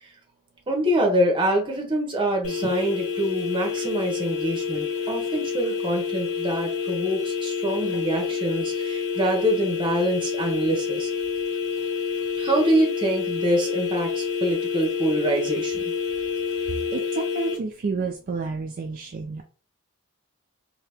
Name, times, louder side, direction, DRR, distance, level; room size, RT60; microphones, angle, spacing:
voice 1, 0.7-11.1 12.4-15.8, right 1 dB, 20° right, 1 dB, 0.9 m, -25 dB
sound 1, 2.4-17.6, left 6 dB, 65° left, 1.5 m, -28 dB
voice 2, 16.5-19.4, right 4 dB, 40° right, 3 dB, 0.3 m, -30 dB
2.8 x 2.7 x 3.4 m, 0.37 s
head